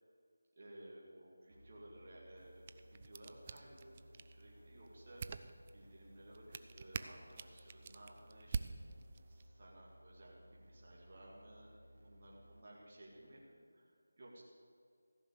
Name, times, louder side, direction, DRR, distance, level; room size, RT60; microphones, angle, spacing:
voice 1, 0.6-5.2 5.7-9.0 9.3-11.7 11.9-14.4, right 1 dB, 40° right, -4 dB, 2.3 m, -57 dB
sound 1, 1.5-13.5, equal, 80° right, 1.4 m, -62 dB
sound 2, 2.4-9.5, right 5 dB, 25° right, 0.4 m, -48 dB
15.0 x 6.2 x 8.6 m, 2.3 s
figure-of-eight pair, 170°, 0 cm